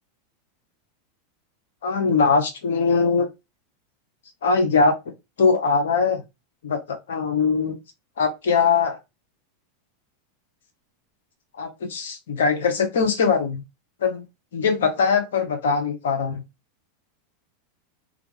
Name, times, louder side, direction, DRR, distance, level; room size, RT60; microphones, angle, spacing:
voice 1, 1.8-3.3 4.4-4.9 5.4-6.2 6.6-7.8 8.2-9.0 11.6-13.6 14.0-14.3 14.5-16.4, left 5 dB, 75° left, 0.7 m, -21 dB
2.4 x 2.2 x 3.0 m
hypercardioid pair, 95°, 0 cm